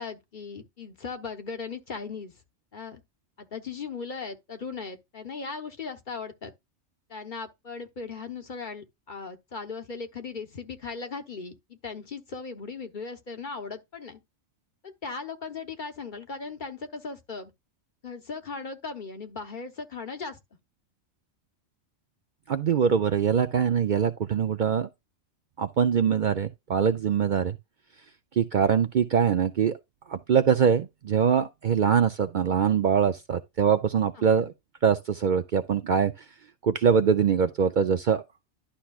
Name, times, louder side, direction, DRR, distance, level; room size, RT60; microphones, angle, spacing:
voice 1, 0.0-2.4 2.7-3.0 3.4-6.5 7.1-14.2 14.8-17.5 18.0-20.4 34.2-34.5, left 4 dB, 45° left, 1.1 m, -38 dB
voice 2, 22.5-24.9 25.6-27.6 28.4-29.8 30.1-34.5 34.8-36.1 36.6-38.2, right 7 dB, 55° right, 0.6 m, -23 dB
11.5 x 5.7 x 2.4 m
omnidirectional pair, 1.2 m